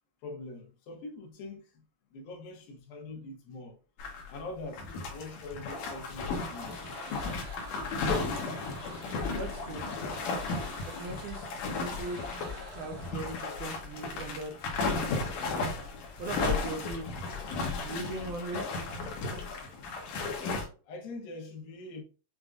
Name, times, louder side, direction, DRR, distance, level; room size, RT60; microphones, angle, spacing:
voice 1, 0.2-1.8 2.1-3.8 4.3-6.9 20.9-22.0, left 2 dB, 85° left, 2.8 m, -44 dB
sound 1, 4.0-4.4 4.7-20.7, left 3 dB, 65° left, 1.9 m, -34 dB
sound 2, 6.6-13.1, right 2 dB, 55° right, 1.1 m, -49 dB
voice 2, 9.4-9.9 10.9-11.5 11.8-12.3 12.8-14.5 16.2-17.1 17.8-18.7, right 2 dB, 75° right, 1.9 m, -38 dB
7.0 x 2.5 x 2.4 m
omnidirectional pair, 4.0 m